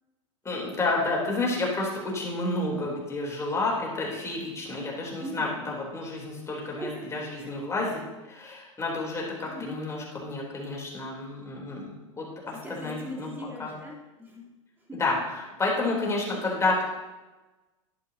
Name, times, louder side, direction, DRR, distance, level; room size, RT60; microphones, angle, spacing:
voice 1, 0.4-8.0 8.3-13.3 13.6-13.7 14.9-16.8, left 2 dB, 15° left, -3 dB, 3.7 m, -30 dB
voice 2, 5.2-5.7 6.6-7.5 9.4-9.8 12.5-14.5 14.9-15.0, equal, 15° right, -3 dB, 3.6 m, -40 dB
12.0 x 11.0 x 2.9 m, 1.2 s
hypercardioid pair, 100°, 17 cm